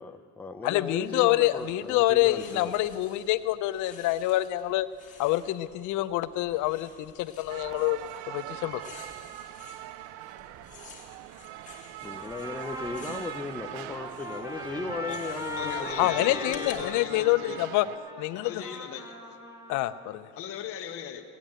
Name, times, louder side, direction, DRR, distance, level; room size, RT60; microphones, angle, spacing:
voice 1, 0.0-2.8 12.0-16.4, left 3 dB, 5° left, 6 dB, 0.5 m, -37 dB
voice 2, 0.6-4.9 5.2-8.0 8.3-8.8 16.0-17.9 18.2-18.5 19.7-20.3, left 16 dB, 65° left, 14 dB, 0.6 m, -26 dB
sound 1, 1.0-16.8, left 5 dB, 25° left, 2.2 m, -52 dB
sound 2, 7.5-18.0, right 14 dB, 70° right, 0.6 m, -42 dB
Trumpet, 12.0-20.1, left 2 dB, 10° right, 1.6 m, -40 dB
voice 3, 15.6-17.7 18.4-19.4 20.4-21.2, left 9 dB, 45° left, 3 dB, 1.0 m, -38 dB
16.0 x 9.1 x 8.6 m, 2.1 s
cardioid pair, 135°, 32 cm